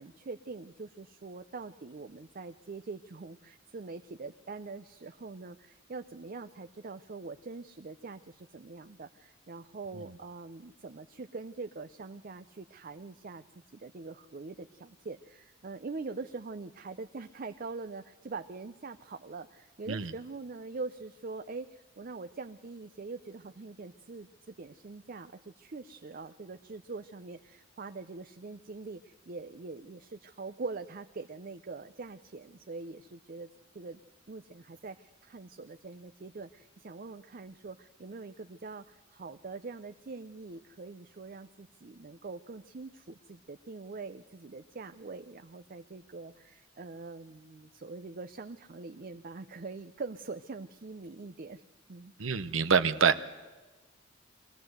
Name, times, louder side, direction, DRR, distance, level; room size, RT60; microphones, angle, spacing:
voice 1, 0.0-13.4 13.7-33.5 33.7-34.0 34.3-51.6 51.9-52.1, right 3 dB, 45° right, 9 dB, 0.6 m, -43 dB
voice 2, 52.2-53.2, right 6 dB, 90° right, 10 dB, 0.8 m, -26 dB
22.5 x 16.5 x 7.9 m, 1.2 s
head